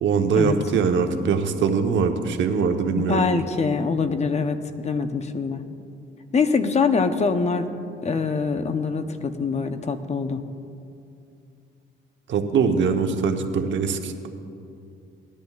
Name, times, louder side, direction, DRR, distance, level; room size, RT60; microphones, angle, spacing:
voice 1, 0.0-3.3 12.3-14.3, right 5 dB, 70° right, 5 dB, 1.0 m, -22 dB
voice 2, 2.9-5.6 6.3-7.7 8.0-10.4, left 4 dB, 35° left, 9 dB, 0.7 m, -24 dB
19.0 x 10.5 x 2.4 m, 2.5 s
cardioid pair, 90°, 20 cm